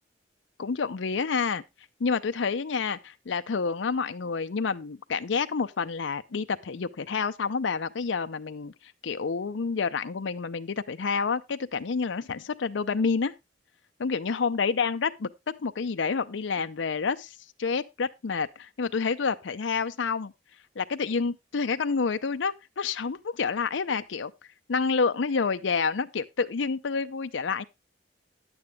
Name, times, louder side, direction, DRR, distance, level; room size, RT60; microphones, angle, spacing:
voice 1, 0.6-1.6 2.0-13.3 14.0-15.3 15.6-20.3 20.8-24.3 24.7-27.6, left 5 dB, 80° left, 0.6 m, -28 dB
10.5 x 8.7 x 3.5 m
head